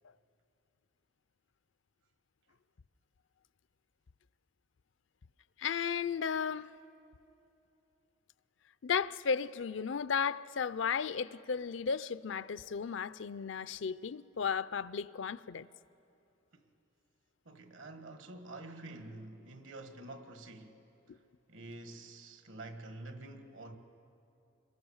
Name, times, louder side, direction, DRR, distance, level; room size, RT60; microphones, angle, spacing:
voice 1, 5.6-6.7 8.8-15.7, left 6 dB, 70° left, 0.5 m, -34 dB
voice 2, 17.4-20.7 21.5-23.8, right 2 dB, 75° right, 1.6 m, -48 dB
26.0 x 23.0 x 7.1 m
head